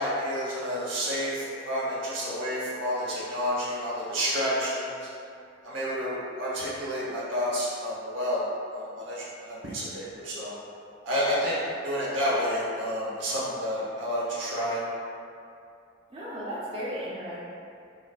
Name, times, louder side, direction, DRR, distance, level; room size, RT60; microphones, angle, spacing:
voice 1, 0.0-5.1 5.6-8.4 8.7-10.6 11.0-14.8, equal, 75° right, -7 dB, 0.9 m, -30 dB
voice 2, 16.1-17.4, equal, 30° right, -9 dB, 0.4 m, -35 dB
3.9 x 2.2 x 2.2 m, 2.4 s
head